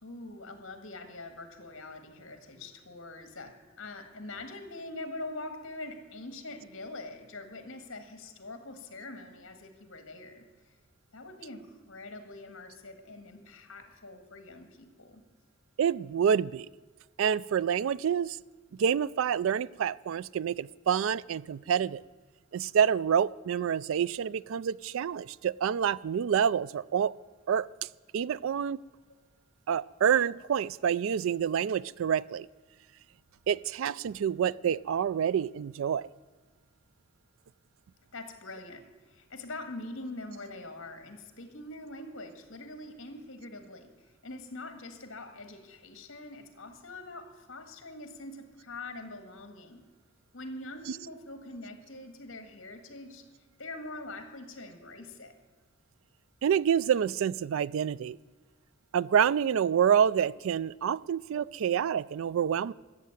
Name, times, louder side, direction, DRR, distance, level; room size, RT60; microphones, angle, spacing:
voice 1, 0.0-10.5 11.1-15.2 38.1-49.9 50.3-53.3 53.6-55.4, left 2 dB, 65° left, 7 dB, 1.8 m, -44 dB
voice 2, 15.8-16.7 17.2-18.4 18.7-22.0 22.5-27.1 27.5-27.7 28.1-28.8 29.7-32.5 33.5-36.1 50.9-51.0 56.4-58.2 58.9-62.7, right 8 dB, 75° right, 21 dB, 0.3 m, -27 dB
14.0 x 7.5 x 9.0 m, 1.4 s
head